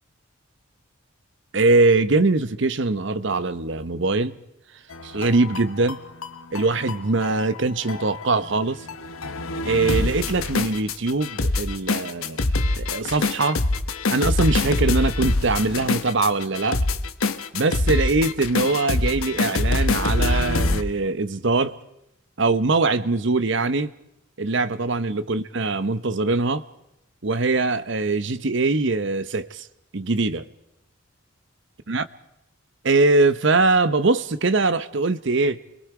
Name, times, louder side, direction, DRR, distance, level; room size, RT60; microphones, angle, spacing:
voice 1, 1.5-4.4 5.0-6.0 6.5-8.8 9.6-12.4 12.8-13.6 14.1-16.8 17.5-21.8 22.4-23.9 24.4-26.6 27.2-29.7 29.9-30.5 31.9-32.0 32.8-35.6, right 3 dB, 60° right, 0.8 m, -22 dB
sound 1, 4.9-20.8, left 2 dB, 90° left, 1.1 m, -25 dB
29.5 x 22.5 x 4.8 m
head